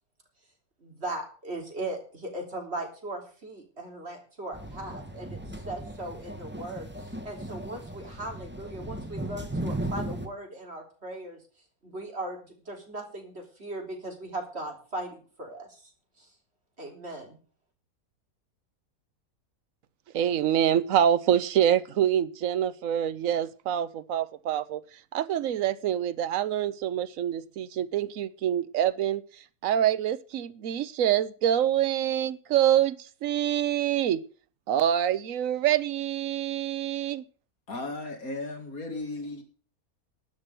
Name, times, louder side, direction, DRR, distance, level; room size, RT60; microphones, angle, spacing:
voice 1, 0.8-11.4 11.8-12.4 12.7-15.9 16.2-16.3 16.8-17.4, right 1 dB, 45° right, 2 dB, 3.8 m, -38 dB
sound 1, 4.5-10.3, right 1 dB, 10° right, 1.4 m, -36 dB
voice 2, 20.1-24.8 25.1-29.2 29.6-34.2 34.7-37.2, right 10 dB, 65° right, 15 dB, 1.2 m, -26 dB
voice 3, 37.7-39.4, left 2 dB, 75° left, 4 dB, 2.9 m, -35 dB
12.5 x 6.1 x 9.1 m, 0.40 s
omnidirectional pair, 1.5 m